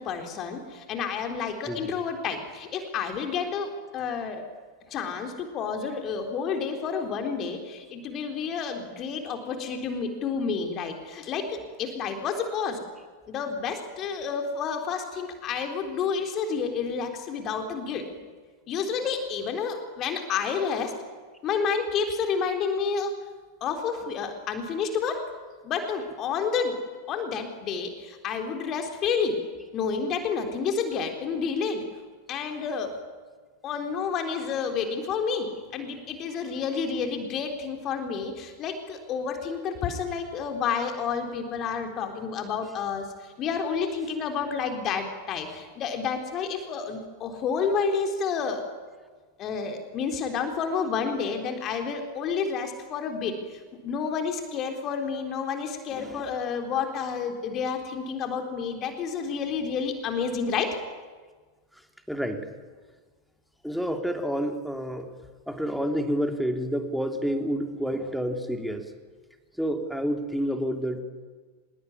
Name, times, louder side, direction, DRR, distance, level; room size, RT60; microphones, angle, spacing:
voice 1, 0.0-4.4 4.9-12.8 13.3-18.0 18.7-20.9 21.4-23.1 23.6-25.2 25.6-26.8 27.1-29.4 29.7-31.8 32.3-32.9 33.6-48.6 49.4-60.8, left 6 dB, 35° left, 4 dB, 3.8 m, -30 dB
voice 2, 1.7-2.0 55.9-56.3 62.1-62.5 63.6-65.1 65.5-68.9 69.6-71.0, equal, ahead, 5 dB, 3.1 m, -29 dB
25.5 x 21.5 x 9.7 m, 1.4 s
figure-of-eight pair, 90°, 0 cm